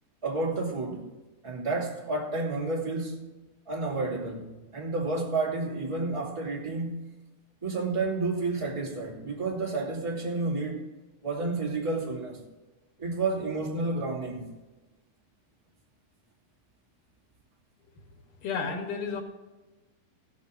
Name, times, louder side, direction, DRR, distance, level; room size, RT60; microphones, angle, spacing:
voice 1, 0.2-1.1 1.4-3.3 3.7-7.1 7.6-10.9 11.2-12.4 13.0-14.5, right 3 dB, 10° right, 2.2 m, -30 dB
voice 2, 18.4-19.2, left 5 dB, 85° left, 3.6 m, -32 dB
16.5 x 8.7 x 3.9 m
omnidirectional pair, 3.6 m